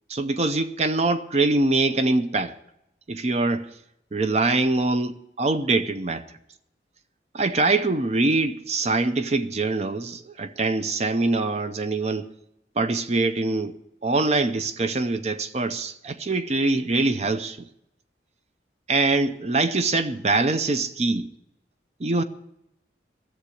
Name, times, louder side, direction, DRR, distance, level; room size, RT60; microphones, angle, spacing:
voice 1, 0.1-2.6 3.1-3.7 4.1-6.2 7.3-12.3 12.8-13.7 14.0-17.7 18.9-21.3 22.0-22.2, right 3 dB, 40° right, 0.6 m, -23 dB
13.5 x 7.3 x 9.7 m
head